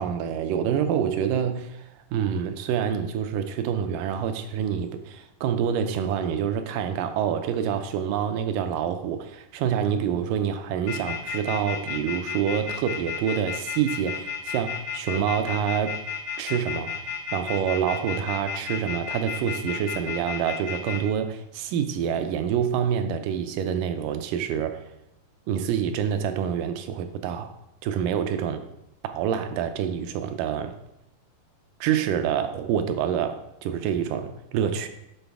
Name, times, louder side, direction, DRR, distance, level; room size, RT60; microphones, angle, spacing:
voice 1, 0.0-16.0 16.4-24.8 25.5-27.5 27.8-28.6 29.0-30.8 31.8-34.9, right 8 dB, 80° right, 2.1 m, -27 dB
sound 1, 10.9-21.0, left 7 dB, 90° left, 3.1 m, -32 dB
11.0 x 4.0 x 3.5 m
omnidirectional pair, 4.0 m